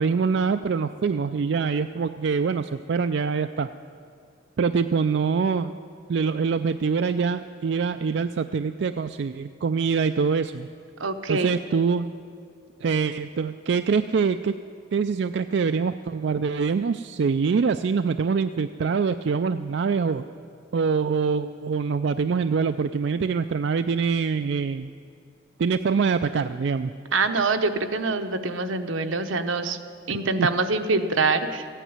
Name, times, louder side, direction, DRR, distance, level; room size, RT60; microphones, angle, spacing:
voice 1, 0.0-3.7 4.6-5.7 6.1-10.7 11.3-12.1 12.8-14.5 14.9-20.2 20.7-24.9 25.6-26.9 30.4-30.5, right 5 dB, 60° right, 9 dB, 0.3 m, -24 dB
voice 2, 11.0-11.6 27.1-29.8 30.1-31.7, right 3 dB, 85° right, 7 dB, 1.0 m, -25 dB
15.0 x 9.2 x 9.5 m, 2.3 s
head